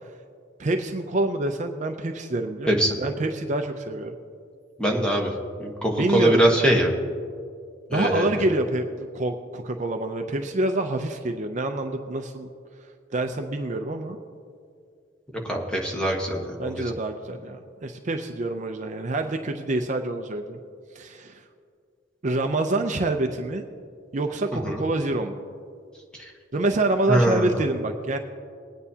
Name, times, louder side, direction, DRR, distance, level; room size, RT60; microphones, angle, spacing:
voice 1, 0.6-4.2 6.0-6.7 7.9-12.5 13.1-14.2 16.6-20.6 20.9-21.4 22.2-23.7 24.1-25.4 26.5-28.2, right 2 dB, 40° right, 6 dB, 0.5 m, -26 dB
voice 2, 2.7-3.0 4.8-5.3 5.6-6.9 7.9-8.3 15.4-16.8 24.6-24.8 26.2-26.3 27.1-27.6, right 1 dB, 5° left, -1 dB, 1.2 m, -22 dB
20.5 x 9.2 x 2.8 m, 2.3 s
head